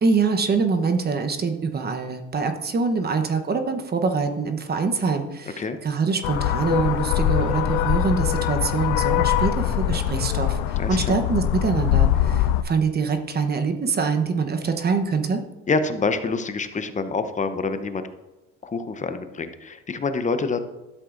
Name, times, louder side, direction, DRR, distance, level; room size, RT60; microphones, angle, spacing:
voice 1, 0.0-15.4, right 4 dB, 30° right, 6 dB, 1.0 m, -24 dB
sound 1, 6.2-12.6, left 11 dB, 90° left, 0.5 m, -22 dB
voice 2, 10.8-11.2 15.7-18.1 18.6-20.6, left 4 dB, 25° left, 9 dB, 0.8 m, -26 dB
12.5 x 7.6 x 2.6 m, 1.0 s
supercardioid pair, 100°, 32 cm